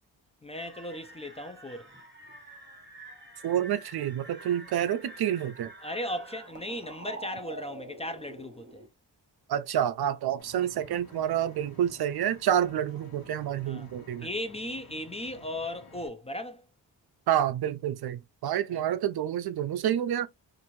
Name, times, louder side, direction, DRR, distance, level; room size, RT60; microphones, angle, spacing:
voice 1, 0.4-1.9 5.8-8.8 13.7-13.9 14.2-16.7 18.7-18.8, left 1 dB, 15° left, 0.5 m, -37 dB
sound 1, 0.5-8.9, right 2 dB, 25° right, 1.1 m, -47 dB
voice 2, 3.4-5.7 9.5-14.3 17.3-20.3, right 10 dB, 60° right, 0.5 m, -28 dB
Vehicle, 10.4-16.1, left 3 dB, 50° left, 1.1 m, -53 dB
2.9 x 2.6 x 2.7 m
cardioid pair, 65°, 43 cm